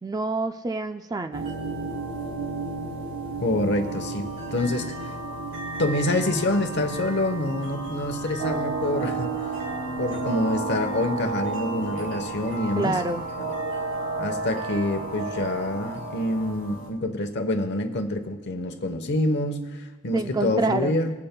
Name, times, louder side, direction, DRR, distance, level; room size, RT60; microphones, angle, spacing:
voice 1, 0.0-1.5 12.8-13.3 20.1-21.0, right 3 dB, 20° right, 9 dB, 0.3 m, -27 dB
sound 1, 1.3-16.9, right 2 dB, 75° right, 3.2 m, -35 dB
voice 2, 3.4-4.9 5.8-9.3 10.0-13.0 14.2-21.1, left 1 dB, 55° left, 7 dB, 1.0 m, -26 dB
sound 2, 8.4-16.5, right 4 dB, 55° right, 1.5 m, -31 dB
25.0 x 8.5 x 2.3 m, 1.3 s
head